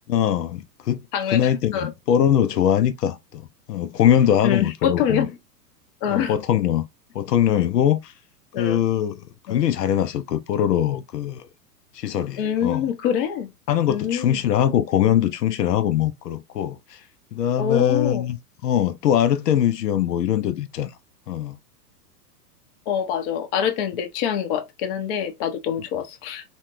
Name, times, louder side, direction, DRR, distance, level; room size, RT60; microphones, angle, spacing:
voice 1, 0.1-1.0 1.3-3.4 3.7-5.3 6.1-6.8 7.1-8.1 8.6-9.2 9.5-11.4 11.9-12.9 13.7-17.0 17.3-18.4 18.6-20.9 21.3-21.6, left 10 dB, 80° left, 0.5 m, -22 dB
voice 2, 1.1-1.9 4.4-5.3 6.0-6.3 8.5-8.8 9.5-9.6 12.4-13.5 13.9-14.4 17.6-18.2 22.9-26.4, left 8 dB, 35° left, 0.6 m, -25 dB
3.1 x 2.1 x 2.9 m
figure-of-eight pair, 105°, 48 cm